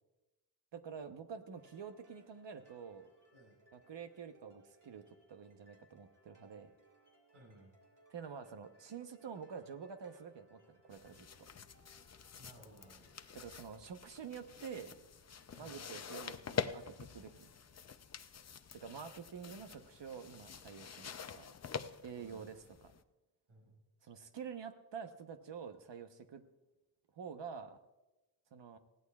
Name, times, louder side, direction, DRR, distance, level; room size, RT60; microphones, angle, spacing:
voice 1, 0.7-3.1 3.7-6.7 8.1-11.3 13.3-15.0 15.6-17.5 18.7-21.5 22.0-22.9 24.0-26.4 27.1-27.8 28.5-28.8, right 6 dB, 60° right, 8 dB, 1.0 m, -48 dB
sound 1, 1.6-19.4, right 1 dB, 40° right, 2.4 m, -70 dB
voice 2, 7.3-7.8 12.4-13.2 15.5-15.8 22.1-22.5 23.5-23.8, right 1 dB, 80° right, -1 dB, 5.6 m, -59 dB
sound 2, 10.9-23.0, left 6 dB, 35° left, 0.5 m, -46 dB
20.0 x 16.0 x 2.4 m, 1.0 s
wide cardioid pair, 110°, 49 cm